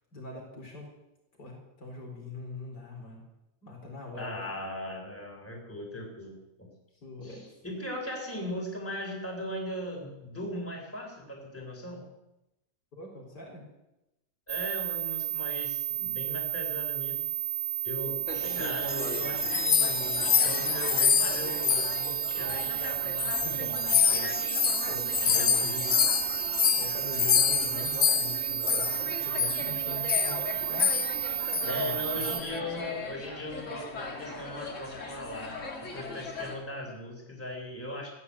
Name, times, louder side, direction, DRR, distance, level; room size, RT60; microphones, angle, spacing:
voice 1, 0.1-0.9 1.4-3.2 3.6-4.4 7.0-7.5 12.9-13.7 23.4-23.7 24.9-25.7 26.7-30.9 31.6-32.5, left 2 dB, 85° left, -1 dB, 4.9 m, -43 dB
voice 2, 4.2-6.7 7.2-12.1 14.5-17.3 17.8-24.3 25.2-25.9 31.7-38.1, left 1 dB, 10° left, 0 dB, 3.9 m, -38 dB
sound 1, 14.5-32.4, right 11 dB, 50° right, 0.7 m, -32 dB
sound 2, 18.3-36.6, left 3 dB, 50° left, 2.5 m, -40 dB
sound 3, 18.6-22.9 23.1-29.1 29.4-29.6 30.1-30.4 30.8-31.2 31.5-31.7 32.2-32.5, left 7 dB, 70° left, 0.4 m, -27 dB
14.5 x 10.0 x 8.5 m, 0.93 s
omnidirectional pair, 1.7 m